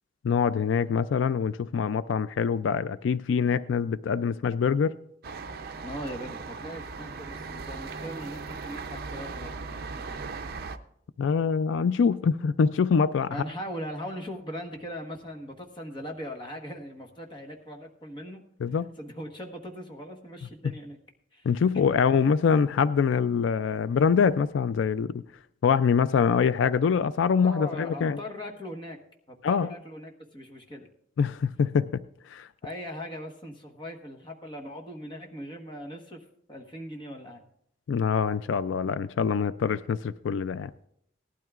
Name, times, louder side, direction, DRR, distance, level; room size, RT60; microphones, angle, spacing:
voice 1, 0.2-5.0 11.2-13.4 18.6-18.9 21.5-25.2 25.6-28.2 29.4-29.7 31.2-31.9 32.3-32.5 37.9-40.7, left 6 dB, 85° left, 15 dB, 0.4 m, -24 dB
sound 1, 5.2-10.8, right 4 dB, 55° right, 0.6 m, -38 dB
voice 2, 5.8-9.5 13.3-18.4 19.0-21.0 21.3-21.5 27.4-29.0 29.3-30.9 32.6-36.2 36.5-37.4, equal, 25° left, 2 dB, 1.3 m, -39 dB
18.5 x 12.0 x 2.4 m, 0.72 s
head